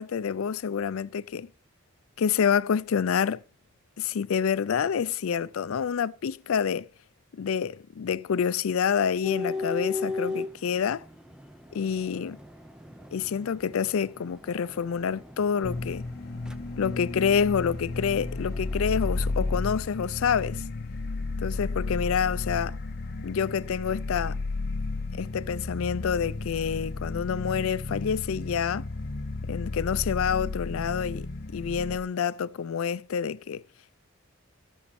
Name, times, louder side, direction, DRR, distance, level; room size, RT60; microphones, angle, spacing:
voice 1, 0.0-1.5 2.2-3.4 4.0-6.9 7.3-11.0 11.7-12.4 13.1-16.1 16.8-20.6 21.4-22.8 23.2-24.4 25.1-28.8 29.5-33.6, left 7 dB, 80° left, 0.4 m, -28 dB
sound 1, 9.2-19.6, left 3 dB, 5° right, 0.6 m, -38 dB
sound 2, 15.6-32.0, left 3 dB, 45° left, 0.8 m, -33 dB
16.5 x 6.3 x 4.2 m
head